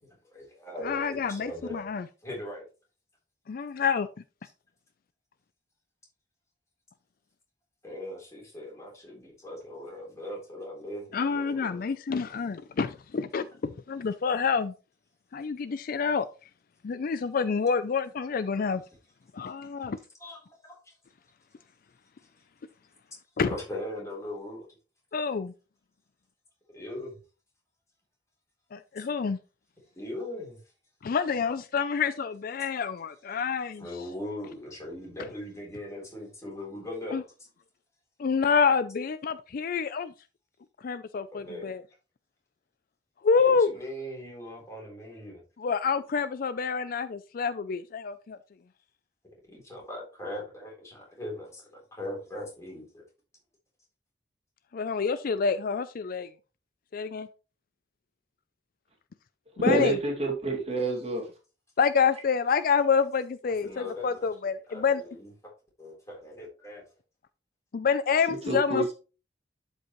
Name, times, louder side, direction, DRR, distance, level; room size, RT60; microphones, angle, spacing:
voice 1, 0.0-1.8 2.2-2.7 7.8-11.9 20.2-20.9 23.5-24.7 26.7-27.2 29.9-30.6 33.8-37.2 41.3-41.7 43.3-45.4 49.5-53.0 63.6-65.5 65.8-66.8, left 1 dB, 15° left, 3.8 m, -40 dB
voice 2, 0.8-2.1 3.5-4.1 11.1-14.7 15.3-16.3 16.8-18.8 19.3-20.0 23.4-23.5 25.1-25.5 28.7-29.4 31.0-33.9 37.1-37.2 38.2-40.1 40.8-41.8 43.2-43.7 45.6-48.4 54.7-56.3 56.9-57.3 59.6-60.0 61.8-65.0 67.7-68.9, left 5 dB, 50° left, 0.4 m, -27 dB
voice 3, 59.6-61.3 68.3-68.9, right 2 dB, 35° right, 2.2 m, -27 dB
11.5 x 5.3 x 3.0 m
head